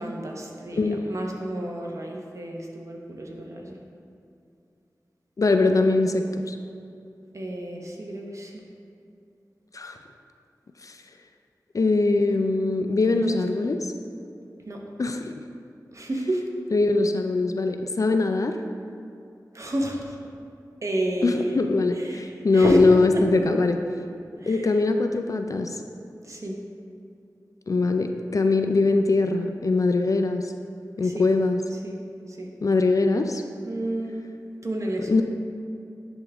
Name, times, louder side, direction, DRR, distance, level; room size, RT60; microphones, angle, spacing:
voice 1, 0.0-3.8 7.3-8.6 13.1-13.4 14.6-14.8 15.9-16.5 19.5-20.2 20.8-21.7 21.9-23.5 24.4-24.8 26.2-26.6 31.0-31.3 31.7-32.0 32.3-32.5 33.6-34.3 34.6-35.2, right 1 dB, 45° right, 0 dB, 1.0 m, -30 dB
voice 2, 5.4-6.6 9.7-10.0 10.8-11.0 11.7-13.8 15.0-15.3 16.7-18.5 21.2-23.8 24.5-25.8 27.7-30.5 31.0-31.6 32.6-33.4 35.1-35.2, left 3 dB, 50° left, 6 dB, 0.4 m, -22 dB
10.0 x 3.6 x 3.5 m, 2.6 s
cardioid pair, 45°, 7 cm